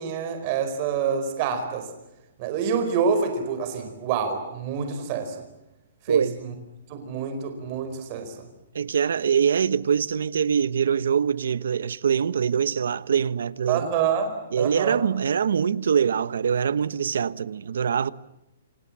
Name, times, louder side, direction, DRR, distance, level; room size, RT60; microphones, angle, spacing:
voice 1, 0.0-1.9 2.4-5.4 6.1-6.2 6.9-8.4 13.7-14.3 14.6-15.0, right 6 dB, 25° right, 4.7 m, -27 dB
voice 2, 6.1-6.4 8.7-13.9 14.5-18.1, right 7 dB, 70° right, 1.1 m, -23 dB
29.0 x 27.0 x 7.4 m
hypercardioid pair, 180°, 0 cm